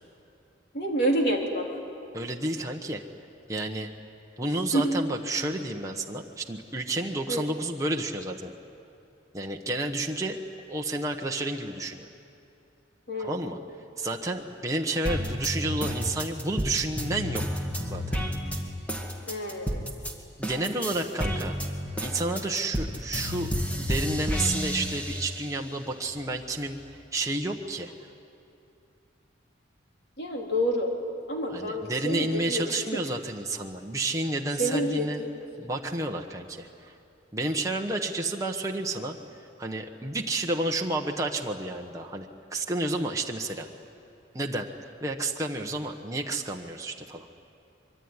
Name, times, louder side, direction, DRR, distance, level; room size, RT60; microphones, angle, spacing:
voice 1, 0.7-1.8 4.7-4.9 7.3-7.4 13.1-13.3 19.3-19.9 30.2-30.9 31.3-33.0 34.6-35.3, right 1 dB, 55° left, 0 dB, 3.9 m, -28 dB
voice 2, 2.1-3.0 3.5-3.9 4.4-8.5 9.3-10.4 10.7-12.1 13.2-13.6 14.0-17.4 17.9-18.2 20.4-21.6 22.0-23.5 23.8-26.8 27.1-27.9 31.5-35.2 35.6-36.9 37.3-39.2 39.6-43.7 44.3-44.7 45.0-47.3, right 2 dB, 15° right, 1 dB, 1.1 m, -30 dB
sound 1, 15.1-20.1 20.4-25.6 26.1-27.1, equal, 5° left, 2.1 m, -31 dB
25.0 x 23.5 x 9.7 m, 2.7 s
head